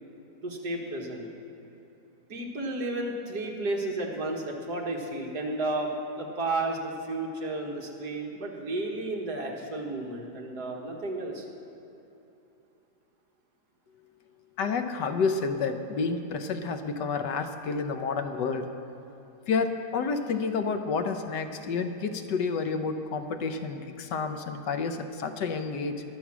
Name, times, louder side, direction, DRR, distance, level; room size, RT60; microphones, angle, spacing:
voice 1, 0.4-1.3 2.3-5.9 6.2-11.4, right 2 dB, 65° right, 0 dB, 2.2 m, -32 dB
voice 2, 14.6-18.7 19.5-26.0, left 4 dB, 75° left, 7 dB, 1.5 m, -30 dB
21.5 x 7.6 x 6.1 m, 2.9 s
omnidirectional pair, 1.9 m